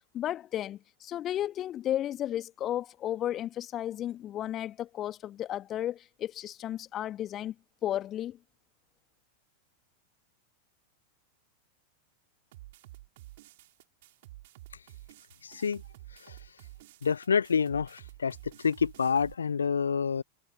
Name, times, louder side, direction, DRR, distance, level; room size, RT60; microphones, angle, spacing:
voice 1, 0.1-7.5 7.8-8.4, left 12 dB, 30° left, 1.8 m, -33 dB
sound 1, 12.5-19.3, right 17 dB, 55° right, 6.3 m, -51 dB
voice 2, 15.4-15.8 17.0-18.4 18.6-20.2, left 6 dB, 70° left, 0.4 m, -27 dB
figure-of-eight pair, 90°, 0 cm